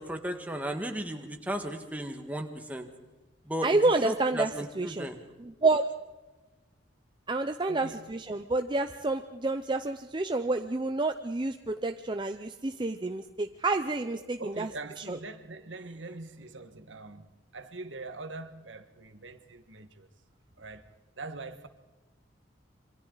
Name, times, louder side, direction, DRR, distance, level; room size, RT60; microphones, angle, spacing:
voice 1, 0.0-2.9 3.4-3.8 4.0-5.2, right 1 dB, 10° right, 1.6 m, -35 dB
voice 2, 3.6-4.5 4.8-5.1 5.4-5.9 7.3-14.7 15.1-15.2, right 3 dB, 25° right, 0.6 m, -29 dB
voice 3, 7.7-8.1 14.2-20.1 20.6-20.9 21.2-21.7, right 3 dB, 80° right, 1.6 m, -43 dB
27.0 x 24.0 x 4.0 m
head